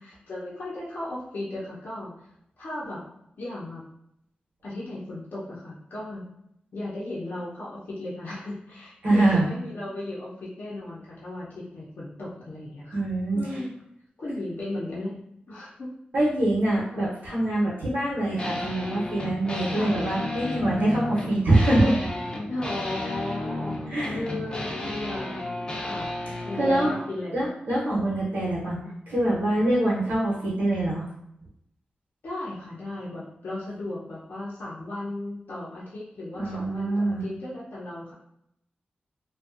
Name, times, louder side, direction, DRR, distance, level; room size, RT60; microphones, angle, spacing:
voice 1, 0.0-2.3 2.6-3.0 3.4-3.8 4.6-6.3 6.7-13.0 13.3-13.7 14.2-15.2 15.5-15.9 16.9-17.0 19.7-20.0 22.5-23.8 24.1-25.4 25.7-26.2 26.4-27.5 28.8-29.0 32.2-38.1, left 1 dB, 70° left, -8 dB, 0.6 m, -36 dB
voice 2, 9.0-9.5 12.9-13.4 16.1-22.1 23.9-24.2 26.3-26.9 27.3-28.8 29.1-31.0 36.3-37.2, right 1 dB, 85° right, -8 dB, 0.8 m, -24 dB
sound 1, 18.4-27.1, left 2 dB, 25° left, 0.4 m, -33 dB
2.6 x 2.2 x 2.4 m, 0.76 s
wide cardioid pair, 110°, 3 cm